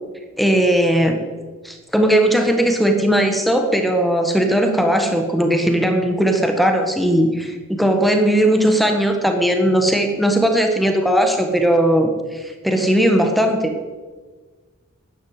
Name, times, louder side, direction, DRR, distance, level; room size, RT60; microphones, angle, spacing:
voice 1, 0.4-1.2 1.6-13.7, right 1 dB, ahead, 4 dB, 1.6 m, -18 dB
12.5 x 10.0 x 8.2 m, 1.4 s
head